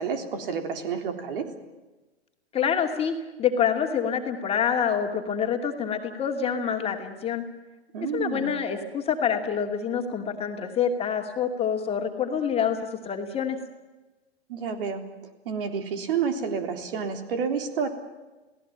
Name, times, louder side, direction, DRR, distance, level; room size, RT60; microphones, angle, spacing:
voice 1, 0.0-1.5 7.9-8.5 14.5-17.9, right 6 dB, 55° right, 7 dB, 3.7 m, -30 dB
voice 2, 2.5-7.5 8.1-13.6, left 7 dB, 20° left, 3 dB, 2.6 m, -27 dB
29.5 x 18.0 x 8.8 m, 1.2 s
figure-of-eight pair, 115°, 33 cm